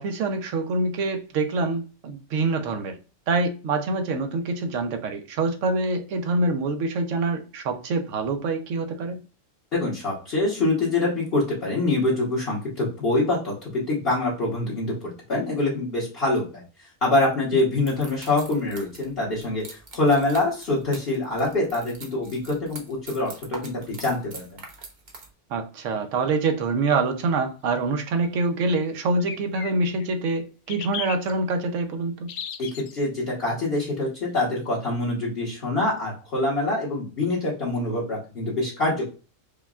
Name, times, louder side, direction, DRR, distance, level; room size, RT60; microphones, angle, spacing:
voice 1, 0.0-3.0 3.3-9.2 25.5-32.3, right 3 dB, 75° right, 1.0 m, -25 dB
voice 2, 9.7-24.6 32.6-39.1, left 2 dB, 50° left, 1.3 m, -25 dB
sound 1, 17.9-25.3, right 3 dB, 40° right, 0.8 m, -44 dB
sound 2, 26.2-26.3 29.2-30.1 30.7-31.3 32.3-33.0, left 8 dB, 70° left, 0.8 m, -35 dB
5.1 x 2.2 x 2.3 m
omnidirectional pair, 1.3 m